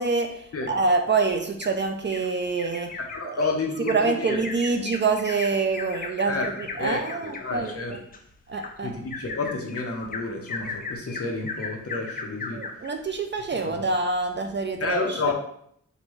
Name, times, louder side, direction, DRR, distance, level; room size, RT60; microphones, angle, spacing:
voice 1, 0.0-3.0 3.2-3.5 3.9-8.0 8.5-8.9 12.5-15.3, right 4 dB, 40° right, 5 dB, 0.4 m, -26 dB
Bird vocalization bird call bird song, 0.7-1.8 2.1-2.3 2.6-12.9 13.4-13.5 13.8-13.9, left 4 dB, 30° left, 0.4 m, -37 dB
voice 2, 3.1-4.4 6.3-6.5 6.8-8.0 8.8-12.6 13.7-13.8 14.8-15.3, left 3 dB, 50° left, 1 dB, 0.8 m, -30 dB
5.1 x 2.6 x 3.1 m, 0.67 s
wide cardioid pair, 160°, 30 cm